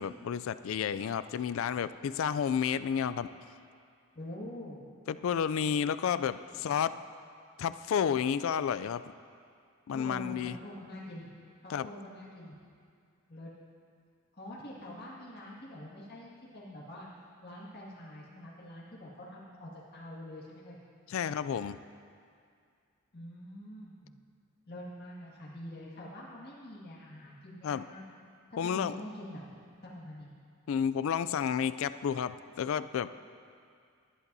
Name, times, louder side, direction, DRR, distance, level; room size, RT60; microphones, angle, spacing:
voice 1, 0.0-3.3 5.1-7.0 7.6-9.0 9.9-10.6 11.7-11.9 21.1-21.8 27.6-27.8 28.6-28.9 30.7-33.1, left 7 dB, 65° left, 14 dB, 0.3 m, -31 dB
voice 2, 4.1-4.8 6.5-6.7 9.9-11.3 11.6-12.5 13.3-13.5 14.4-17.1 17.4-20.8 23.1-24.1 24.7-28.0 28.5-29.4 29.9-30.3, left 1 dB, 45° left, -7 dB, 2.0 m, -45 dB
19.5 x 11.0 x 2.7 m, 2.3 s
head